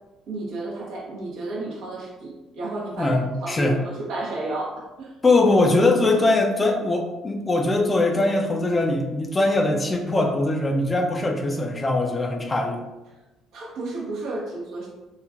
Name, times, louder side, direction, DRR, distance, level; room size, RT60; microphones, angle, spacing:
voice 1, 0.3-5.1 13.5-14.9, right 2 dB, 60° right, -4 dB, 0.8 m, -32 dB
voice 2, 3.0-3.8 5.2-12.8, left 2 dB, 25° left, 2 dB, 0.4 m, -21 dB
3.1 x 2.3 x 2.4 m, 1.1 s
figure-of-eight pair, 50°, 0 cm